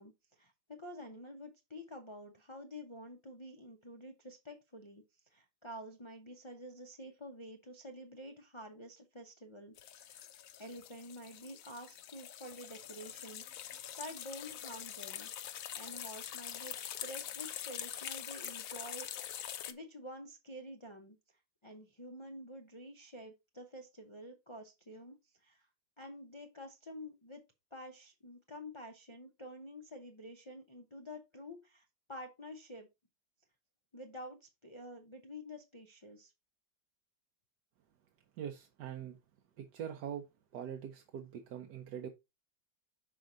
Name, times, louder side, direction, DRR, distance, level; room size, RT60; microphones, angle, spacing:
voice 1, 0.0-5.0 5.3-10.2 10.6-15.3 15.7-25.7 26.0-27.4 27.7-32.9 33.9-36.3, equal, 40° left, 0.4 m, -49 dB
sound 1, 9.8-19.7, left 10 dB, 65° left, 0.8 m, -44 dB
voice 2, 38.4-39.2 39.6-40.3 40.5-42.1, right 9 dB, 65° right, 1.3 m, -43 dB
6.3 x 4.6 x 3.8 m
omnidirectional pair, 2.0 m